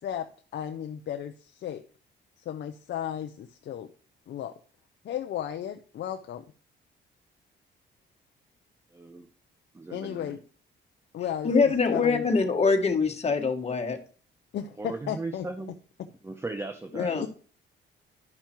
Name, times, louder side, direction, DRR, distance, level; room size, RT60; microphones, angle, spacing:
voice 1, 0.0-1.8 2.4-3.9 4.3-4.5 5.0-6.4 9.9-10.4 11.1-11.5 11.9-12.2 14.5-15.5 17.1-17.3, left 10 dB, 60° left, 7 dB, 0.7 m, -34 dB
voice 2, 8.9-9.3 9.7-10.4 14.8-15.7 16.2-17.3, right 3 dB, 15° right, 8 dB, 0.7 m, -37 dB
voice 3, 11.4-14.0 16.9-17.3, left 4 dB, 30° left, 4 dB, 1.6 m, -24 dB
11.0 x 5.6 x 4.5 m, 0.42 s
cardioid pair, 90°, 20 cm